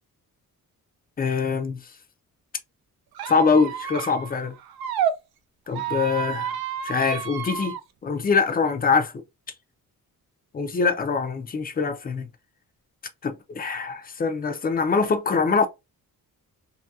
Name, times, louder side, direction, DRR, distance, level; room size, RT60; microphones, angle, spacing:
voice 1, 1.2-1.8 3.3-4.5 5.7-6.6 6.8-7.7 8.0-9.1 10.5-12.3 13.2-15.7, left 5 dB, 25° left, 0.4 m, -23 dB
Squeak, 3.1-5.1 5.7-7.8, right 9 dB, 85° right, 0.6 m, -30 dB
2.7 x 2.6 x 2.3 m
wide cardioid pair, 160°, 36 cm